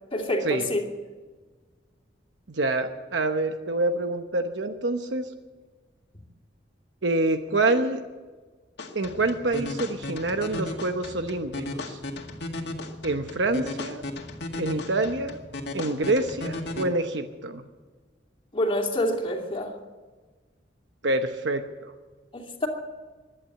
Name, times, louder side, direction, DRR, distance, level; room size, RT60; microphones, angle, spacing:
voice 1, 0.1-0.8 18.5-19.7 22.3-22.7, left 1 dB, 30° left, -1 dB, 2.7 m, -27 dB
voice 2, 2.5-5.3 7.0-8.0 8.9-12.0 13.0-14.0 14.5-15.4 15.7-17.6 21.0-21.9, right 2 dB, 70° right, 7 dB, 1.0 m, -26 dB
sound 1, 8.8-16.8, left 2 dB, 65° left, 2.0 m, -36 dB
16.5 x 11.5 x 7.8 m, 1.3 s
head